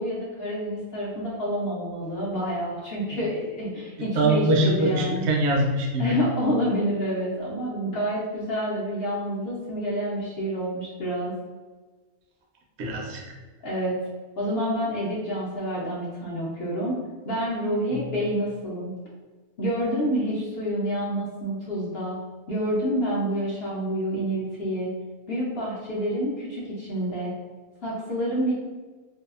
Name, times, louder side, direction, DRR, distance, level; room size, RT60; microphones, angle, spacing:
voice 1, 0.0-5.3 6.0-11.3 13.6-13.9 14.4-17.0 17.2-18.9 19.6-22.2 22.5-24.9 25.3-27.3 27.8-28.5, equal, 60° left, -6 dB, 0.7 m, -28 dB
voice 2, 4.1-6.2 12.8-13.4 17.9-18.0, right 1 dB, 65° right, 0 dB, 0.7 m, -23 dB
2.7 x 2.3 x 2.4 m, 1.3 s
omnidirectional pair, 1.4 m